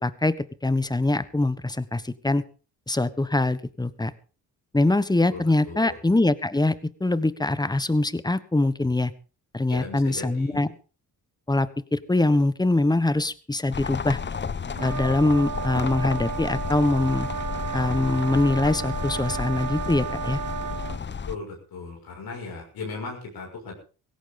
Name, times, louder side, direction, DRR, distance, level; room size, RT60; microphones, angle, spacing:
voice 1, 0.0-2.4 2.9-4.1 4.7-9.1 9.5-10.7 11.5-14.2 14.8-17.3 17.7-20.4, left 2 dB, 10° left, 16 dB, 1.2 m, -23 dB
voice 2, 5.3-6.0 9.7-10.7 21.3-23.7, left 4 dB, 65° left, 1 dB, 6.4 m, -37 dB
sound 1, 13.7-21.4, left 6 dB, 30° left, 0.9 m, -32 dB
sound 2, 14.8-21.0, right 8 dB, 50° right, 0.9 m, -33 dB
17.0 x 15.0 x 3.9 m, 0.37 s
supercardioid pair, 60°, 39 cm